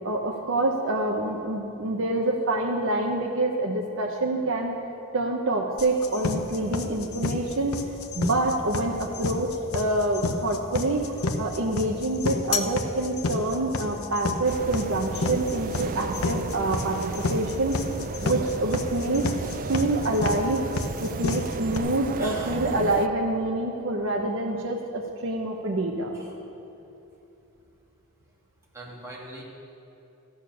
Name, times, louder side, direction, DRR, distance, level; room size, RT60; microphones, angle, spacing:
voice 1, 0.0-4.7 5.1-7.8 8.1-17.8 18.2-19.3 19.7-20.7 21.0-26.1, right 2 dB, 65° right, 0 dB, 0.9 m, -26 dB
sound 1, 5.8-21.8, left 3 dB, 90° left, 0.8 m, -30 dB
sound 2, 14.4-23.1, right 4 dB, 40° right, 0.4 m, -34 dB
voice 2, 22.2-22.6 26.1-26.3 28.7-29.4, right 1 dB, 15° right, -5 dB, 2.4 m, -41 dB
13.5 x 8.7 x 6.2 m, 2.9 s
head